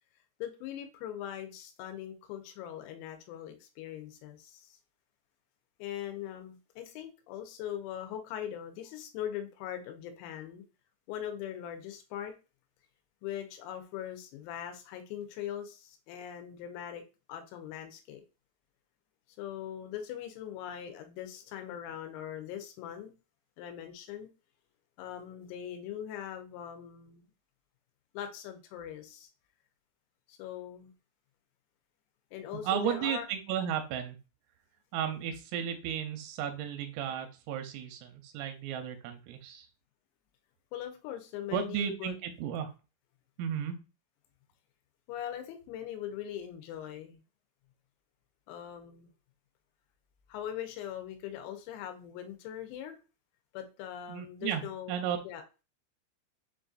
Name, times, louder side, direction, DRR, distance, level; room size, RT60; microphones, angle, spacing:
voice 1, 0.4-4.8 5.8-10.6 11.1-12.3 13.2-17.0 17.3-18.2 19.4-23.1 23.6-24.3 25.0-27.3 28.1-29.3 30.3-30.9 32.3-33.3 40.7-42.2 45.1-47.2 48.5-49.1 50.3-53.0 53.5-54.9 55.2-55.4, left 10 dB, 85° left, 3.4 m, -41 dB
voice 2, 32.6-34.2 34.9-39.7 41.5-42.7 43.4-43.8 54.1-55.2, right 9 dB, 85° right, 3.1 m, -34 dB
7.6 x 2.6 x 2.4 m
omnidirectional pair, 5.9 m